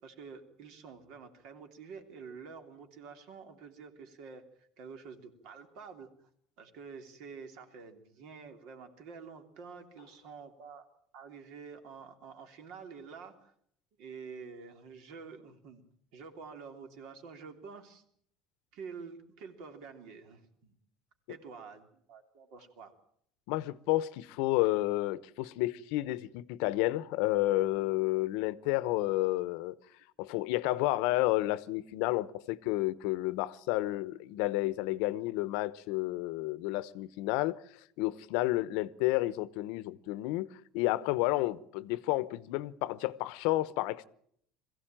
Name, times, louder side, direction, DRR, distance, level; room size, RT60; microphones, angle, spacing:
voice 1, 0.0-6.3 6.6-10.9 11.1-13.5 14.0-15.8 16.1-18.0 18.7-20.7 21.3-22.9 30.6-30.8, right 5 dB, 60° right, 3.3 m, -48 dB
voice 2, 23.5-29.8 30.2-37.6 38.0-40.5 40.7-44.1, left 18 dB, 75° left, 0.9 m, -31 dB
22.0 x 15.5 x 9.0 m
cardioid pair, 160°, 0 cm